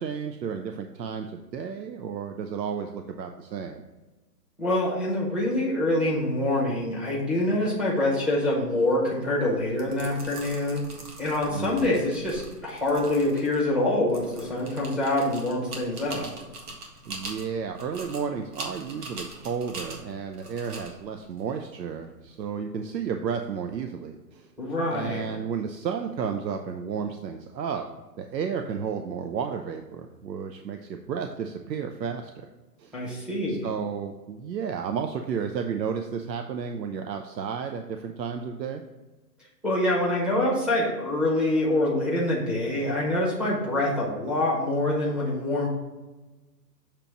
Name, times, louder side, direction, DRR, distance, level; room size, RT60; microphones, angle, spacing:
voice 1, 0.0-3.8 11.6-12.0 17.1-24.5 24.9-27.9 28.2-32.5 32.8-33.0 33.5-38.8, right 6 dB, 90° right, 6 dB, 0.7 m, -32 dB
voice 2, 4.6-10.8 11.2-16.3 24.6-25.2 32.9-33.7 39.6-45.7, left 1 dB, ahead, -6 dB, 0.7 m, -25 dB
sound 1, 9.6-22.4, right 2 dB, 70° right, 1.7 m, -43 dB
6.8 x 3.0 x 5.9 m, 1.1 s
hypercardioid pair, 140°, 49 cm